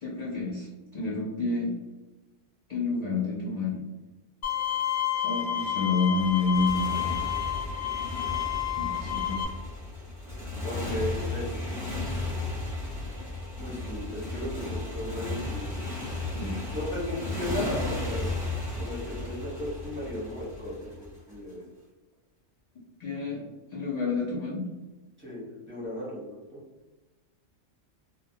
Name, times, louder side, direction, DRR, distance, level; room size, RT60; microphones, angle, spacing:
voice 1, 0.0-1.7 2.7-3.8 5.2-7.3 8.8-9.4 16.2-16.6 23.0-23.4 23.7-24.7, left 3 dB, 60° left, -6 dB, 0.4 m, -29 dB
Bowed string instrument, 4.4-9.4, left 11 dB, 90° left, 1.0 m, -30 dB
Motorcycle, 6.2-21.3, left 2 dB, 25° left, 0.9 m, -34 dB
voice 2, 10.6-11.8 13.6-15.9 16.7-18.3 18.8-21.6 25.2-26.6, left 1 dB, 10° right, -8 dB, 0.7 m, -35 dB
2.1 x 2.1 x 2.7 m, 1.1 s
omnidirectional pair, 1.3 m